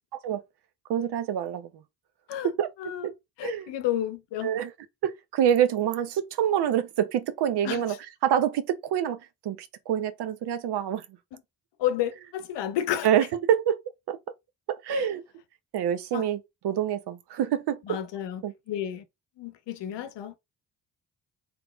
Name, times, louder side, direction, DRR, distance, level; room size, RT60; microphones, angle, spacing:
voice 1, 0.9-1.7 2.4-3.1 3.4-3.7 4.4-4.7 5.0-8.0 8.2-9.2 9.4-11.0 13.0-13.8 14.1-14.2 14.7-15.2 15.7-17.8 18.4-18.5, right 10 dB, 60° right, 0.7 m, -26 dB
voice 2, 3.4-4.5 7.6-7.8 11.8-13.1 14.9-15.1 16.1-16.3 17.9-19.0 19.4-20.4, left 11 dB, 65° left, 0.8 m, -31 dB
3.4 x 2.9 x 2.3 m
hypercardioid pair, 40°, 46 cm